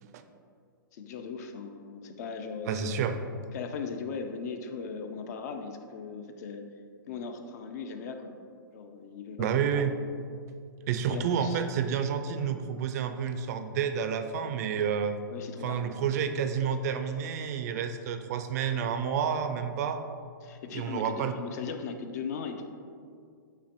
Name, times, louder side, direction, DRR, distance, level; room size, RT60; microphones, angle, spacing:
voice 1, 0.9-2.9 3.5-6.7 7.1-8.3 8.7-9.9 11.1-11.6 15.3-15.9 20.4-22.7, left 5 dB, 50° left, 6 dB, 0.4 m, -38 dB
voice 2, 2.7-3.2 9.4-10.0 10.9-15.2 15.6-20.0 20.7-21.3, right 7 dB, 50° right, 8 dB, 0.4 m, -29 dB
3.4 x 3.1 x 4.0 m, 2.2 s
hypercardioid pair, 125°, 11 cm